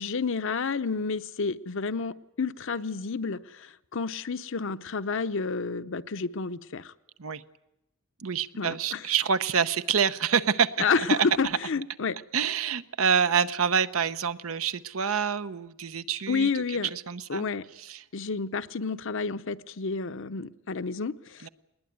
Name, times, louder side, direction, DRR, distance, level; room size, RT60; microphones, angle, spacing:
voice 1, 0.0-6.9 8.6-9.0 10.8-12.2 16.3-16.9 17.3-17.7 18.1-21.5, left 4 dB, 65° left, 12 dB, 0.8 m, -30 dB
voice 2, 8.2-11.2 12.3-16.5 16.9-17.5 17.9-18.0 21.4-21.5, right 6 dB, 85° right, 12 dB, 0.9 m, -27 dB
20.5 x 19.5 x 9.3 m, 0.88 s
head